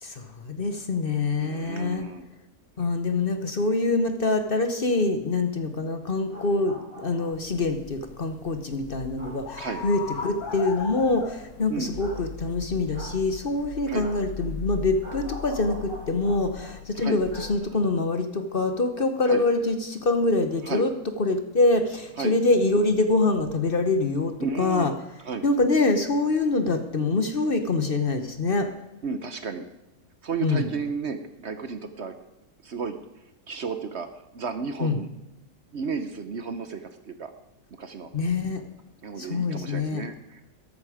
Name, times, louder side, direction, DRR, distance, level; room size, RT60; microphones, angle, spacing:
voice 1, 0.0-2.1 2.8-6.8 7.0-20.9 21.2-24.9 25.4-28.7 30.4-30.7 34.8-35.0 38.1-38.6 39.2-40.0, left 3 dB, 40° left, 8 dB, 1.1 m, -25 dB
voice 2, 1.4-2.2 9.6-9.9 11.7-11.9 13.9-14.1 16.9-17.2 19.3-19.4 20.6-20.9 22.2-22.4 24.4-24.9 25.2-25.4 29.0-29.7 30.2-32.1 32.6-33.0 33.5-34.1 34.3-35.1 35.7-37.3 37.7-38.1 39.0-40.4, right 5 dB, 55° right, 9 dB, 1.1 m, -33 dB
sound 1, 6.1-7.5 9.1-9.3 10.4-10.7 12.0-12.2 12.9-13.1 14.0-14.2 15.0-16.7 17.3-17.5 17.8-17.9, right 1 dB, 70° right, 6.2 m, -43 dB
sound 2, 7.3-17.6, left 4 dB, 90° left, 2.0 m, -39 dB
13.5 x 12.0 x 5.0 m, 0.96 s
omnidirectional pair, 1.5 m